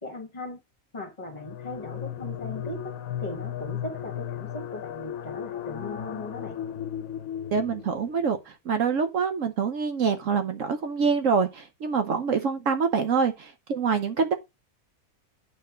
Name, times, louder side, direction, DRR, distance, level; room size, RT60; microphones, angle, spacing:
voice 1, 0.0-0.6 0.9-6.6, left 1 dB, 30° left, 1.6 m, -38 dB
sound 1, 1.3-8.2, left 10 dB, 70° left, 1.1 m, -35 dB
voice 2, 7.5-14.3, right 5 dB, 60° right, 1.1 m, -25 dB
9.0 x 4.5 x 5.0 m
omnidirectional pair, 1.6 m